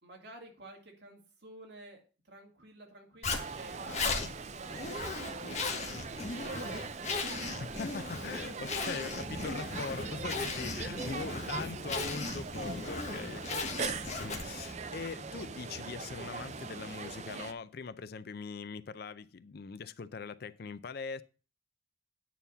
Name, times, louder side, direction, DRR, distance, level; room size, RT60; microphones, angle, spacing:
voice 1, 0.0-4.0 4.4-5.5 6.4-6.7 7.4-7.8 8.4-8.6 10.1-10.2 13.1-13.5, right 1 dB, 60° right, 2.2 m, -52 dB
Zipper (clothing), 3.2-14.7, left 3 dB, 35° left, 1.2 m, -37 dB
sound 1, 3.3-17.5, right 5 dB, 35° right, 0.5 m, -41 dB
voice 2, 7.6-21.2, left 5 dB, 50° left, 0.4 m, -42 dB
sound 2, 9.2-16.9, equal, 15° left, 1.2 m, -49 dB
9.3 x 4.2 x 6.8 m
head